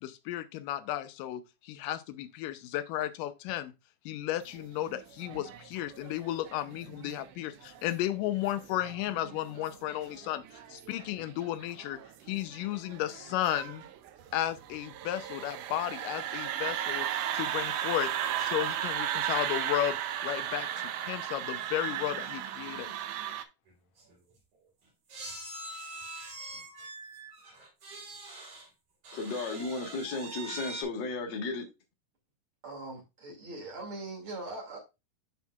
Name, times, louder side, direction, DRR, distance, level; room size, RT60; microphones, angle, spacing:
voice 1, 0.0-3.7 4.1-10.4 10.7-12.0 12.3-13.8 14.3-22.9, left 13 dB, 90° left, 2.3 m, -34 dB
sound 1, 4.6-23.4, right 10 dB, 85° right, 2.2 m, -36 dB
sound 2, 23.7-23.8 24.0-24.2 25.1-28.7 29.0-30.8, right 2 dB, 65° right, 4.7 m, -43 dB
voice 2, 29.1-31.6, left 3 dB, 50° left, 1.5 m, -34 dB
voice 3, 32.6-34.8, right 2 dB, 45° right, 2.9 m, -41 dB
12.0 x 4.5 x 2.3 m
omnidirectional pair, 3.7 m